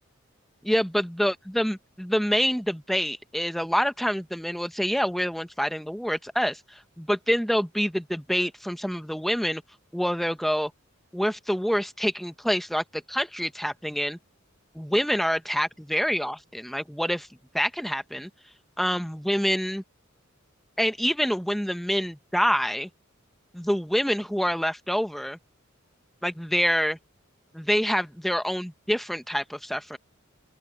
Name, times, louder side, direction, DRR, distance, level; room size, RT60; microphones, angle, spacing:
voice 1, 0.6-9.6 9.9-10.7 11.1-14.2 14.7-17.3 17.5-18.3 18.8-19.8 20.8-22.9 23.5-25.4 26.2-27.0 27.5-30.0, equal, ahead, 0.9 m, -26 dB
open air
head